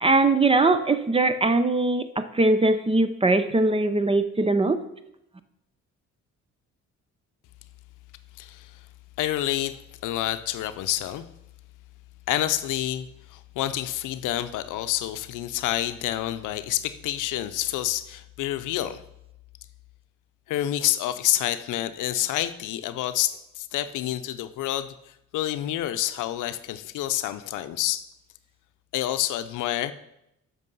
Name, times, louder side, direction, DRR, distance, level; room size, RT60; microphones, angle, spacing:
voice 1, 0.0-4.8, right 2 dB, 20° right, 11 dB, 0.7 m, -21 dB
voice 2, 8.4-8.8 9.2-11.3 12.3-19.0 20.5-28.0 28.9-29.9, left 13 dB, 85° left, 12 dB, 0.6 m, -28 dB
8.3 x 6.1 x 5.4 m, 0.84 s
cardioid pair, 90°, 30 cm